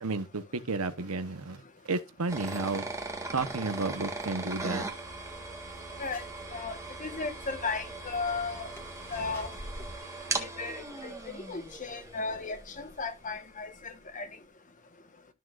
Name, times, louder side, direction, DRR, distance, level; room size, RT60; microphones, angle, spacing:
voice 1, 0.0-2.9 3.3-4.8, right 3 dB, 85° right, 1.1 m, -32 dB
sound 1, 2.3-13.1, right 2 dB, 15° right, 1.6 m, -39 dB
sound 2, 4.9-10.0, equal, 10° left, 1.8 m, -48 dB
voice 2, 6.5-8.7 9.1-9.5 10.4-14.3, left 4 dB, 35° left, 1.4 m, -36 dB
13.5 x 6.3 x 2.5 m
head